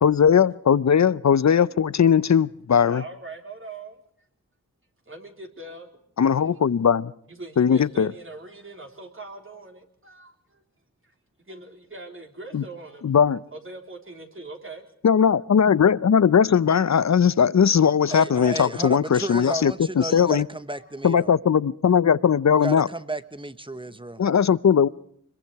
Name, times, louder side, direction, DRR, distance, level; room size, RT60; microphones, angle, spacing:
voice 1, 0.0-3.0 6.2-7.1 7.6-8.1 12.5-12.6 13.0-13.4 15.0-20.5 21.0-22.9 24.2-24.9, left 7 dB, 55° left, 18 dB, 0.7 m, -19 dB
voice 2, 2.9-4.0 5.1-5.9 7.3-10.6 11.0-13.1 13.5-14.9 18.6-18.8 20.7-20.8, right 2 dB, 40° right, 3 dB, 3.7 m, -42 dB
voice 3, 18.1-21.3 22.5-24.2, right 2 dB, 15° right, 13 dB, 1.1 m, -33 dB
25.0 x 22.5 x 4.7 m, 0.66 s
wide cardioid pair, 70°, 33 cm